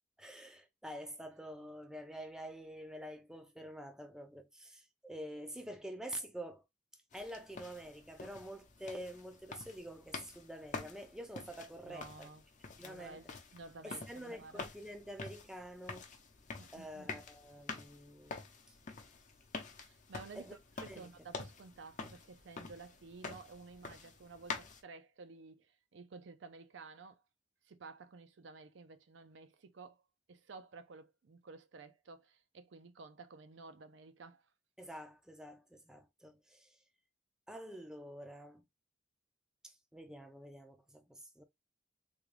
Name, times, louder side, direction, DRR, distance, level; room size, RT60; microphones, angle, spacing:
voice 1, 0.2-6.6 7.1-12.3 12.8-13.2 13.8-16.1 16.7-18.4 18.7-18.8 20.3-20.5 20.9-21.1 34.8-36.8 37.5-38.6 39.6-41.4, equal, 5° right, 0.4 m, -47 dB
sound 1, 7.1-24.8, left 4 dB, 40° left, 0.7 m, -48 dB
voice 2, 11.8-12.4 12.8-14.7 16.6-17.1 19.8-20.6 20.9-27.2 27.6-30.0 30.3-34.4, right 4 dB, 70° right, 0.5 m, -53 dB
3.6 x 2.3 x 3.2 m
head